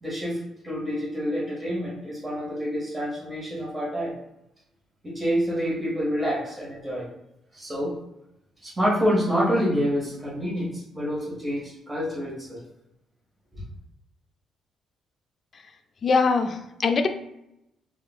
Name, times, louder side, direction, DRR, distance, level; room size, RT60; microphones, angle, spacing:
voice 1, 0.0-4.1 5.0-7.1 7.5-8.0 8.6-12.6 13.5-13.6, equal, 20° right, -6 dB, 1.3 m, -27 dB
voice 2, 16.0-17.1, left 4 dB, 45° left, 7 dB, 0.3 m, -22 dB
3.6 x 2.4 x 2.2 m, 0.83 s
cardioid pair, 90°, 0 cm